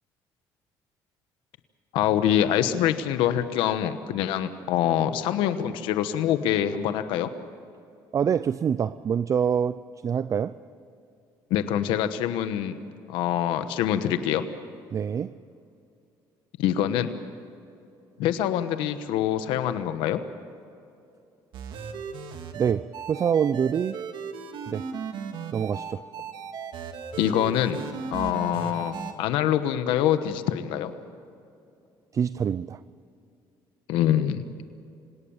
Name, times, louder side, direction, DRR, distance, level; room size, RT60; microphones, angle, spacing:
voice 1, 1.9-7.3 11.5-12.8 13.1-14.4 16.6-17.1 18.2-20.2 27.2-27.8 28.1-30.9 33.9-34.4, left 10 dB, 90° left, 10 dB, 1.1 m, -25 dB
voice 2, 8.1-10.6 14.9-15.4 22.5-24.0 24.7-24.9 25.5-26.1 32.1-32.8, right 7 dB, 40° right, 15 dB, 0.5 m, -26 dB
sound 1, 21.5-29.1, right 6 dB, 70° right, 2.1 m, -36 dB
27.0 x 17.5 x 7.2 m, 2.6 s
cardioid pair, 100°, 8 cm